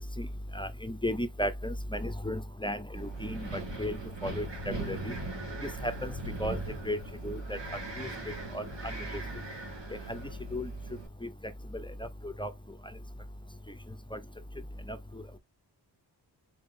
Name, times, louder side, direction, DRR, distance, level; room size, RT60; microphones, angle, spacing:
voice 1, 0.5-5.1 5.8-6.1 6.4-6.6 6.8-7.0 7.2-7.6 8.0-8.9 10.1-10.2 10.5-10.7 12.2-12.5 14.1-14.2 14.9-15.0, left 1 dB, 10° left, 0.5 m, -34 dB
Wind, 2.9-11.1, right 3 dB, 90° right, 1.3 m, -40 dB
4.4 x 3.6 x 2.5 m
wide cardioid pair, 100°, 42 cm